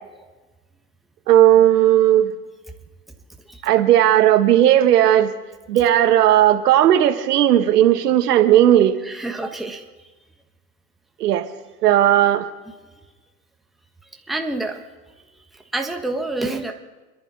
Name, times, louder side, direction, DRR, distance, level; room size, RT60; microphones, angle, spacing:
voice 1, 1.3-2.3 3.6-5.3 5.7-9.0 11.2-11.5 11.8-12.4, right 12 dB, 75° right, 8 dB, 1.6 m, -15 dB
voice 2, 9.1-9.8 14.3-14.7 15.7-16.7, right 2 dB, ahead, 3 dB, 1.2 m, -27 dB
29.5 x 11.5 x 4.2 m, 1.3 s
hypercardioid pair, 115°, 48 cm